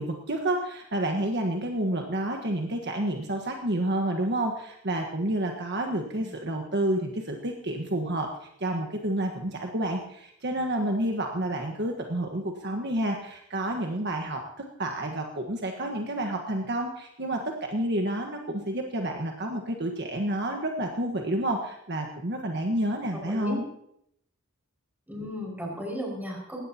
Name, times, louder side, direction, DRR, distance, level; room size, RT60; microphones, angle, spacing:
voice 1, 0.0-23.7, right 1 dB, 55° right, 2 dB, 1.5 m, -29 dB
voice 2, 23.1-23.6 25.1-26.6, equal, 10° right, -2 dB, 5.8 m, -35 dB
20.0 x 16.5 x 2.9 m, 0.73 s
head